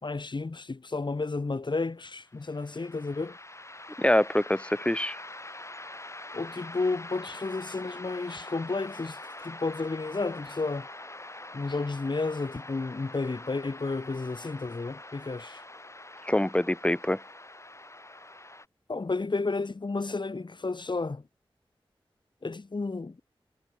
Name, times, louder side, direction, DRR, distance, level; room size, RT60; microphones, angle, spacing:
voice 1, 0.0-3.4 6.3-10.9 11.5-15.6 18.9-21.2 22.4-23.2, left 3 dB, 55° left, 3.4 m, -32 dB
sound 1, 2.2-18.7, left 2 dB, 30° left, 5.4 m, -44 dB
voice 2, 4.0-5.2 16.3-17.2, left 1 dB, 10° left, 1.3 m, -25 dB
cardioid pair, 45°, 10 cm